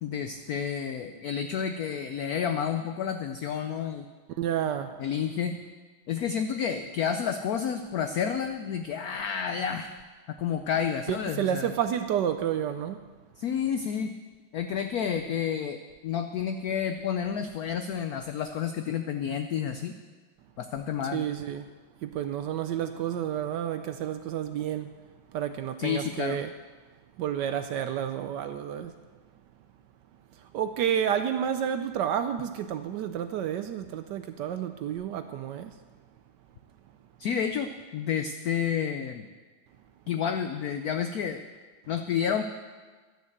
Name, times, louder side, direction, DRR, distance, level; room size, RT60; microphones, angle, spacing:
voice 1, 0.0-4.0 5.0-5.6 6.1-9.9 10.3-11.7 13.4-14.2 14.5-20.0 20.6-21.3 25.8-26.4 37.2-39.3 40.1-41.4 41.9-42.4, left 8 dB, 80° left, 7 dB, 0.8 m, -30 dB
voice 2, 4.4-5.0 11.1-13.1 21.1-21.7 22.0-24.9 25.3-26.5 27.2-28.9 30.5-35.7, right 9 dB, 75° right, 9 dB, 1.0 m, -30 dB
12.0 x 6.6 x 7.8 m, 1.4 s
omnidirectional pair, 2.2 m